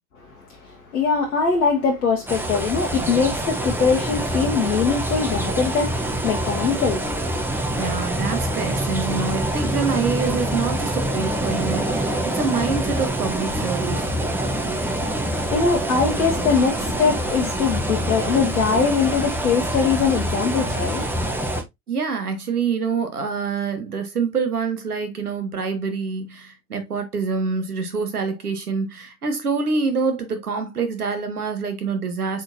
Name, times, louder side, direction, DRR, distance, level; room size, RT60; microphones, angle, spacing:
voice 1, 0.2-7.5 14.8-21.5, left 5 dB, 80° left, 1.1 m, -22 dB
sound 1, 2.3-21.6, right 1 dB, 5° right, 1.0 m, -25 dB
voice 2, 7.7-14.1 21.9-32.4, right 5 dB, 85° right, 1.3 m, -26 dB
4.9 x 3.9 x 2.7 m
figure-of-eight pair, 75°, 44 cm